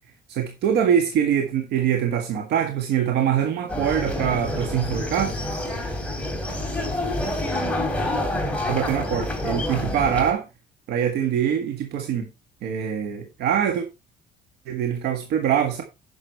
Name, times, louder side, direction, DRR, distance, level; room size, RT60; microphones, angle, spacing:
voice 1, 0.3-5.3 8.7-10.5 10.9-12.3 12.6-13.8 14.7-15.8, right 9 dB, 75° right, 1.7 m, -23 dB
sound 1, 3.7-10.3, left 1 dB, 5° left, 3.1 m, -27 dB
9.8 x 6.6 x 4.5 m
cardioid pair, 110°, 17 cm